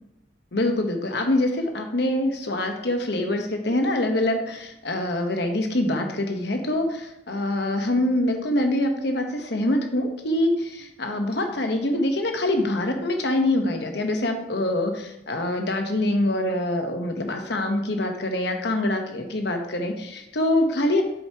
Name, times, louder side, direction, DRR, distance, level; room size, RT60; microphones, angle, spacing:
voice 1, 0.5-21.0, left 1 dB, 60° left, 4 dB, 1.1 m, -25 dB
7.8 x 6.9 x 2.9 m, 0.90 s
head